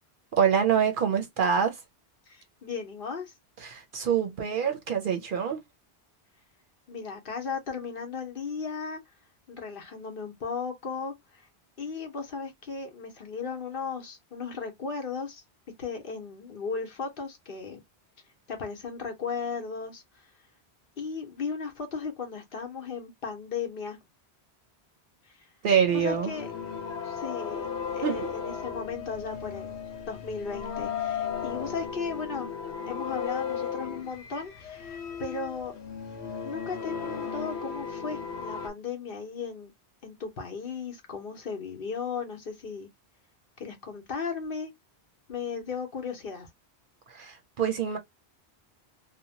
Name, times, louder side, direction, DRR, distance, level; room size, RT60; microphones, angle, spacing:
voice 1, 0.3-1.8 3.6-5.6 25.6-26.3 28.0-28.3 47.1-48.0, right 7 dB, 60° right, 0.7 m, -25 dB
voice 2, 2.3-3.3 6.9-9.0 9.5-11.5 11.8-15.4 15.8-17.8 18.5-20.2 21.0-24.0 25.3-25.5 25.9-26.5 27.0-27.7 27.9-29.8 30.1-32.5 32.9-35.7 36.4-39.7 40.0-42.9 43.6-44.7 45.3-46.5, left 5 dB, 60° left, 1.0 m, -36 dB
Blackpool High Tide Organ, 25.9-38.7, left 7 dB, 85° left, 1.0 m, -35 dB
2.8 x 2.1 x 2.7 m
omnidirectional pair, 1.1 m